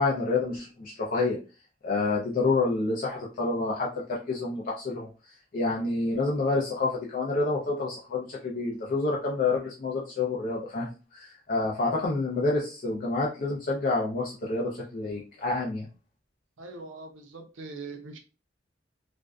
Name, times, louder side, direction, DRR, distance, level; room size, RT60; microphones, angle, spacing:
voice 1, 0.0-1.4 1.8-5.1 5.5-15.9, left 3 dB, 45° left, -2 dB, 0.4 m, -28 dB
voice 2, 16.6-18.2, right 3 dB, 80° right, 4 dB, 0.6 m, -41 dB
2.5 x 2.2 x 2.2 m, 0.33 s
head